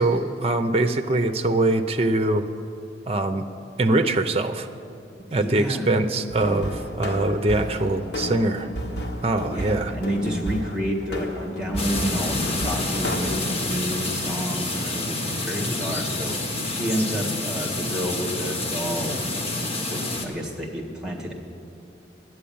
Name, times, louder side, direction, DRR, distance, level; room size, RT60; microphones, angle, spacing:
voice 1, 0.0-2.4 3.1-3.5 3.8-4.7 5.3-8.7 9.2-9.9, right 2 dB, 35° right, 8 dB, 0.6 m, -23 dB
voice 2, 5.2-5.9 9.5-16.4 16.7-19.3 19.9-21.3, equal, 5° right, 0 dB, 1.7 m, -30 dB
sound 1, 6.3-13.2, equal, 75° left, 1.4 m, -32 dB
sound 2, 11.8-20.3, left 2 dB, 35° left, 1.3 m, -28 dB
11.5 x 9.4 x 8.7 m, 2.6 s
head